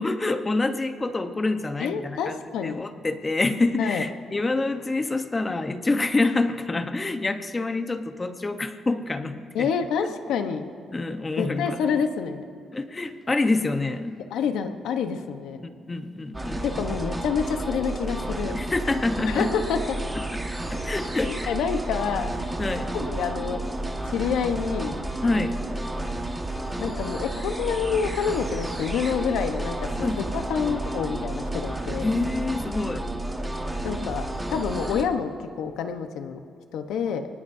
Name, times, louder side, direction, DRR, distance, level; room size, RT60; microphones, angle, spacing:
voice 1, 0.0-9.7 10.0-10.1 10.9-11.8 12.7-14.2 15.9-16.7 18.5-19.5 20.7-21.5 22.6-22.9 25.2-25.6 30.0-30.2 32.0-33.1, left 2 dB, 25° left, 7 dB, 1.1 m, -27 dB
voice 2, 1.8-2.9 3.8-4.0 9.5-10.7 11.4-12.4 14.3-15.6 16.6-18.5 19.3-20.0 21.2-22.5 22.9-23.6 24.0-25.4 26.7-32.1 33.8-34.2 34.5-36.4 36.7-37.3, left 6 dB, 85° left, 7 dB, 1.1 m, -28 dB
sound 1, 16.3-35.0, right 1 dB, 15° right, 1.7 m, -31 dB
24.0 x 19.5 x 2.8 m, 2.4 s
cardioid pair, 90°, 0 cm